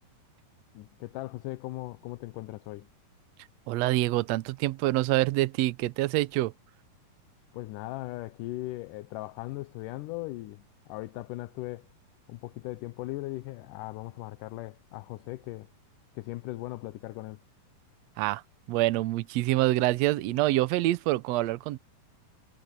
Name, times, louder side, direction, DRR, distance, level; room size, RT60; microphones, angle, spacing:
voice 1, 0.7-2.9 7.5-11.9 12.3-15.7 16.2-17.4, left 18 dB, 80° left, 2.2 m, -38 dB
voice 2, 3.7-6.5 18.2-18.4 18.7-21.8, right 17 dB, 80° right, 1.5 m, -26 dB
omnidirectional pair, 3.9 m